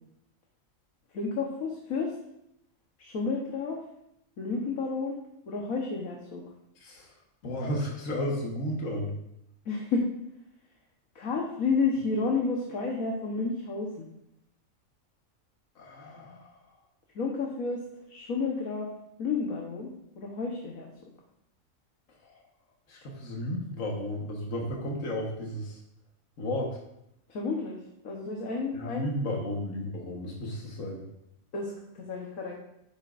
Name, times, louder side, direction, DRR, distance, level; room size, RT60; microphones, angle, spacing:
voice 1, 1.1-2.1 3.0-3.8 4.4-5.2 5.5-6.4 9.6-10.0 11.1-14.1 17.1-17.8 18.1-18.9 19.2-20.9 27.3-29.2 31.5-32.5, left 4 dB, 85° left, -1 dB, 1.6 m, -31 dB
voice 2, 6.8-7.1 7.4-9.1 15.7-16.6 22.2-22.3 22.9-25.8 26.4-26.8 28.7-31.1, left 1 dB, 70° left, -1 dB, 1.8 m, -33 dB
11.0 x 8.7 x 2.5 m, 0.79 s
omnidirectional pair, 1.4 m